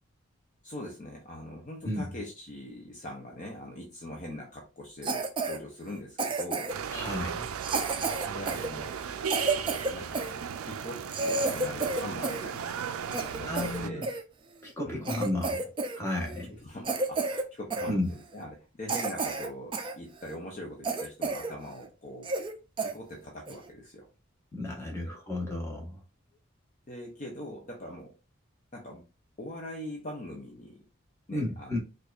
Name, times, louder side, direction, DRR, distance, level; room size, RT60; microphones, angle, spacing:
voice 1, 0.6-6.7 8.2-9.0 9.9-12.7 13.1-14.1 14.8-15.1 16.5-22.3 22.8-24.1 24.8-25.1 26.9-28.2 28.7-29.1 29.4-30.9 31.3-31.8, left 1 dB, 35° left, 0 dB, 0.6 m, -42 dB
Cough, 5.0-5.6 6.2-6.9 7.6-10.3 10.8-10.9 11.1-12.5 12.8-14.2 14.7-14.8 15.1-16.0 16.2-16.5 16.8-17.5 17.7-17.9 18.4-18.5 18.9-19.9 20.3-20.4 20.8-21.5 21.8-21.9 22.2-22.5 22.8-22.9 23.5-23.7, right 3 dB, 25° right, 0.4 m, -31 dB
sound 1, 6.7-13.9, right 7 dB, 90° right, 0.4 m, -36 dB
voice 2, 6.9-7.4 13.5-14.0 14.6-15.7 15.9-16.6 17.9-18.1 24.5-26.0 31.3-31.8, left 1 dB, 15° left, -1 dB, 1.1 m, -33 dB
4.5 x 2.4 x 2.4 m, 0.31 s
head